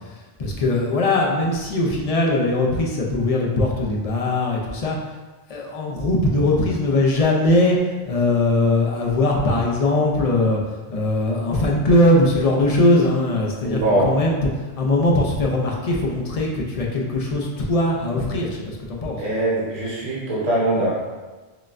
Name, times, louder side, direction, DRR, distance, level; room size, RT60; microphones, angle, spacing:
voice 1, 0.4-5.0 5.5-10.6 10.9-14.5 14.7-19.2, left 2 dB, 45° left, -1 dB, 0.5 m, -20 dB
voice 2, 13.6-14.2 19.2-21.0, right 1 dB, 40° right, -6 dB, 0.9 m, -22 dB
5.8 x 2.2 x 2.5 m, 1.3 s
omnidirectional pair, 1.0 m